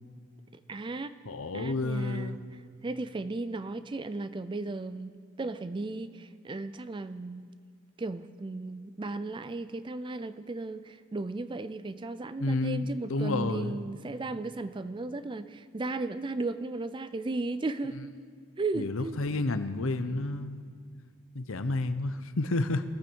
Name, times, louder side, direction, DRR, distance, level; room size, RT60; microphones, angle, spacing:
voice 1, 0.7-1.2 1.5-2.4 2.8-7.5 8.0-18.1 18.6-19.2, right 3 dB, 20° right, 13 dB, 0.4 m, -35 dB
voice 2, 1.3-2.4 12.4-13.8 18.7-20.6 21.3-22.8, left 2 dB, 65° left, 11 dB, 0.8 m, -30 dB
18.5 x 14.0 x 4.6 m, 2.1 s
head